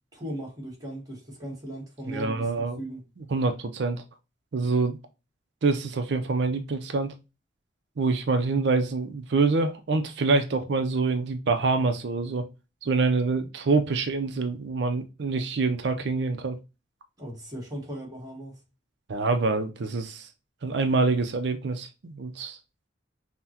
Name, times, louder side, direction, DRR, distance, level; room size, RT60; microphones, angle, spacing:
voice 1, 0.1-3.1 17.2-18.6, right 1 dB, 20° right, 1.5 m, -38 dB
voice 2, 2.0-2.8 3.2-4.0 4.5-5.0 5.6-7.1 8.0-12.5 12.8-16.6 19.1-20.3 20.6-22.6, right 3 dB, 65° right, 0.5 m, -26 dB
5.5 x 2.1 x 2.8 m
head